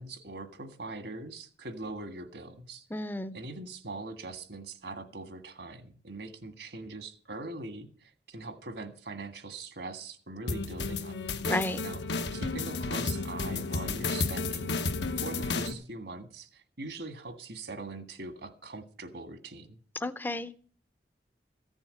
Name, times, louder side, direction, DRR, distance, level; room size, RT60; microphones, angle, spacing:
voice 1, 0.0-3.1 3.3-11.2 11.8-12.0 12.3-14.8 15.2-19.8, right 2 dB, 70° right, 8 dB, 1.7 m, -42 dB
voice 2, 2.9-3.4 11.5-11.8 20.0-20.5, left 1 dB, 10° left, 13 dB, 0.6 m, -32 dB
sound 1, 10.5-15.7, left 3 dB, 80° left, 1.1 m, -32 dB
15.0 x 7.2 x 7.7 m, 0.43 s
head